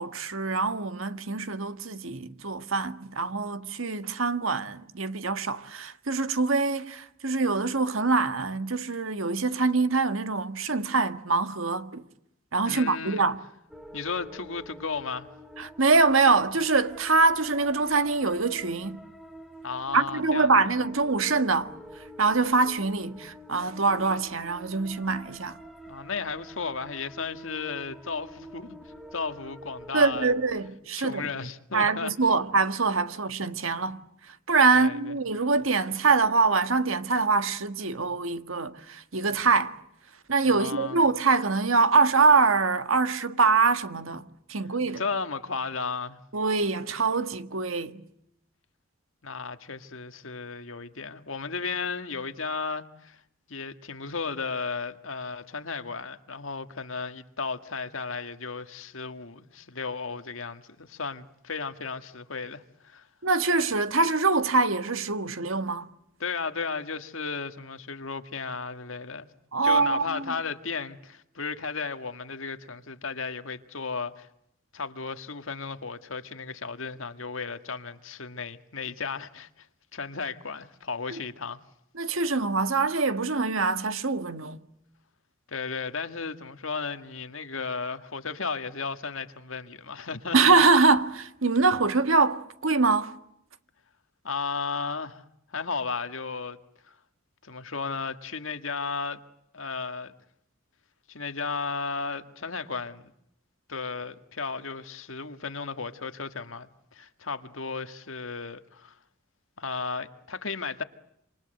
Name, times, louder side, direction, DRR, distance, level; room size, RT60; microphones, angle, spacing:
voice 1, 0.0-12.0 12.5-13.4 15.6-19.0 19.9-25.6 29.9-31.3 31.7-39.8 40.3-45.0 46.3-48.1 63.2-65.9 69.5-70.3 81.1-81.2 81.9-84.6 90.3-93.1, right 4 dB, 80° right, 1.6 m, -24 dB
voice 2, 12.6-13.2 13.9-15.3 19.6-20.5 25.9-30.3 31.0-32.3 34.7-35.1 40.4-41.0 45.0-46.2 49.2-53.2 53.5-63.1 66.2-69.3 69.6-74.3 74.7-79.7 79.9-81.6 85.5-90.4 94.2-95.3 95.5-96.6 96.8-97.0 97.4-99.2 99.5-100.1 101.1-103.1 103.7-109.0 109.6-110.8, left 4 dB, 75° left, 1.8 m, -34 dB
sound 1, 13.7-30.7, equal, ahead, 1.9 m, -47 dB
28.0 x 27.0 x 7.8 m
head